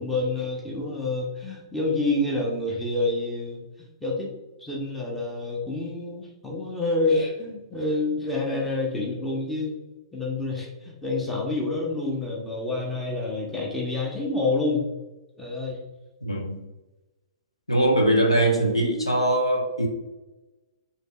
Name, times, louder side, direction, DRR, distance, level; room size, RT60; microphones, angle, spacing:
voice 1, 0.0-4.3 4.6-9.8 10.1-14.8 15.4-15.8, left 2 dB, 5° left, -3 dB, 0.9 m, -28 dB
voice 2, 16.2-16.6 17.7-19.9, right 1 dB, 90° left, 0 dB, 0.9 m, -22 dB
6.4 x 2.9 x 2.3 m, 1.1 s
figure-of-eight pair, 110°, 3 cm